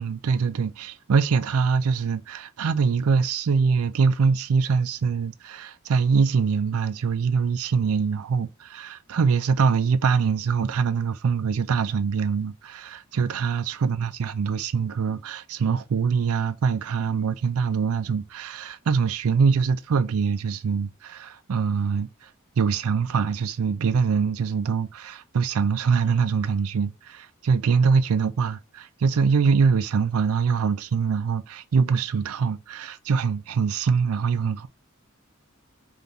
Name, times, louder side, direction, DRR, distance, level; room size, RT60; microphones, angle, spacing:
voice 1, 0.0-22.3 22.6-34.7, right 5 dB, 85° right, 0.4 m, -23 dB
5.1 x 2.9 x 2.6 m
head